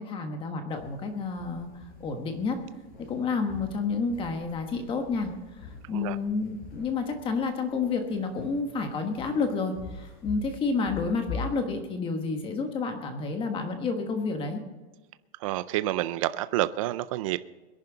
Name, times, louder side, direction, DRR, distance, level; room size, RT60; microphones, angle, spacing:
voice 1, 0.0-2.6 3.1-5.3 5.6-14.6, left 4 dB, 15° left, 5 dB, 1.3 m, -30 dB
sound 1, 0.7-11.6, left 4 dB, 50° left, 5.1 m, -44 dB
voice 2, 15.4-17.4, right 15 dB, 30° right, 14 dB, 0.4 m, -28 dB
22.5 x 10.5 x 4.0 m, 1.2 s
supercardioid pair, 170°, 33 cm